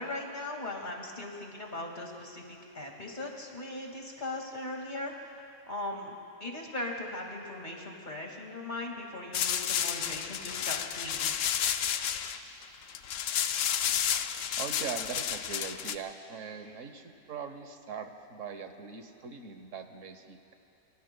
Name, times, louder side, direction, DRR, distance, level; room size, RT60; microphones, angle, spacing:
voice 1, 0.0-5.1 5.7-6.1 6.4-11.3, left 2 dB, 35° left, 0 dB, 2.2 m, -39 dB
sound 1, 9.3-16.0, left 9 dB, 75° left, 1.0 m, -31 dB
voice 2, 14.2-20.5, right 6 dB, 75° right, 6 dB, 1.4 m, -41 dB
27.0 x 24.0 x 2.2 m, 2.9 s
omnidirectional pair, 1.3 m